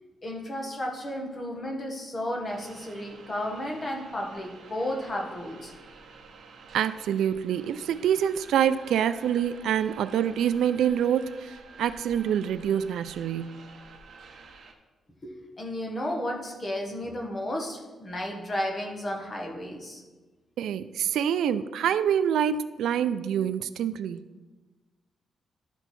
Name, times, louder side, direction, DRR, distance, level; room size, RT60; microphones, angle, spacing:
voice 1, 0.2-5.7 15.2-20.0, left 1 dB, 25° left, 1 dB, 1.2 m, -33 dB
sound 1, 2.4-14.7, right 4 dB, 55° right, 0.9 m, -50 dB
voice 2, 6.7-13.6 20.6-24.2, right 9 dB, 85° right, 12 dB, 0.3 m, -26 dB
12.0 x 4.5 x 4.1 m, 1.2 s
wide cardioid pair, 180°, 0 cm